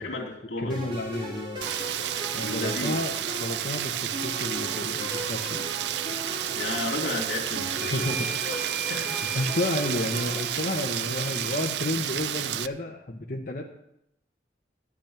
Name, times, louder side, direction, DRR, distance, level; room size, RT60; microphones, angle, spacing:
voice 1, 0.0-0.8 2.4-3.0 6.5-8.3 8.9-9.3, left 2 dB, 85° left, 0 dB, 2.8 m, -33 dB
voice 2, 0.6-1.6 2.3-5.7 7.8-8.3 8.9-13.6, left 2 dB, 50° left, 0 dB, 1.1 m, -31 dB
sound 1, 0.7-11.4, equal, 30° right, 2.9 m, -38 dB
Rain, 1.6-12.7, right 11 dB, 70° right, 0.4 m, -31 dB
sound 2, 7.7-12.0, right 3 dB, 55° right, 2.4 m, -39 dB
12.0 x 6.2 x 8.8 m, 0.79 s
head